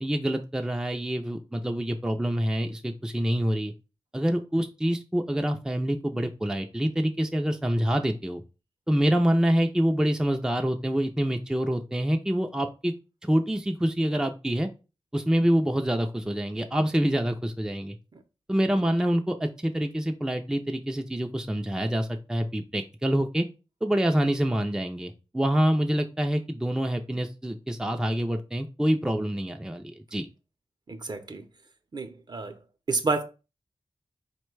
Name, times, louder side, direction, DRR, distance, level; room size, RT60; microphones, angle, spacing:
voice 1, 0.0-3.7 4.1-8.4 8.9-12.9 13.2-14.7 15.1-18.0 18.5-23.5 23.8-30.3, equal, 5° right, 0.4 m, -26 dB
voice 2, 30.9-31.4 31.9-32.6 32.9-33.2, right 3 dB, 45° right, 0.7 m, -29 dB
4.7 x 2.2 x 4.6 m
wide cardioid pair, 85°, 10 cm